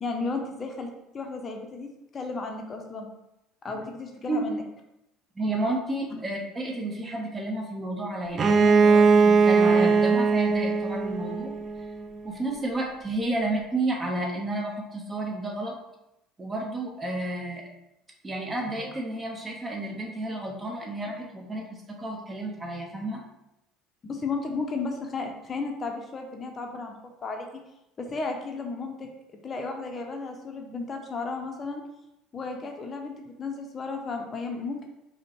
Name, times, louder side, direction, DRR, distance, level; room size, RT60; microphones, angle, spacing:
voice 1, 0.0-3.1 3.6-4.6 6.1-6.3 24.0-27.0 27.2-27.6 28.0-31.8 32.3-34.9, left 3 dB, 35° left, 3 dB, 0.6 m, -34 dB
voice 2, 5.3-11.5 12.2-15.7 16.4-17.7 18.2-23.2, right 1 dB, 20° right, 1 dB, 0.9 m, -31 dB
Bowed string instrument, 8.3-12.0, right 4 dB, 35° right, 0.3 m, -20 dB
5.0 x 2.1 x 2.9 m, 0.88 s
hypercardioid pair, 65°, 0 cm